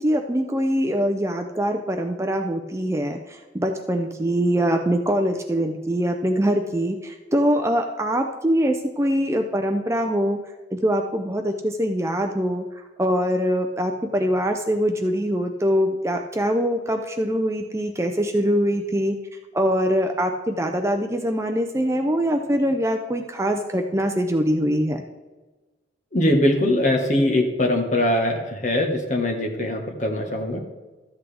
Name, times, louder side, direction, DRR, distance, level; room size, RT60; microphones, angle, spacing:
voice 1, 0.0-10.4 10.7-12.7 13.0-19.2 19.5-25.0, equal, 15° right, 4 dB, 0.5 m, -23 dB
voice 2, 26.1-30.6, left 1 dB, 40° left, 1 dB, 1.5 m, -22 dB
13.0 x 8.2 x 3.4 m, 1.2 s
head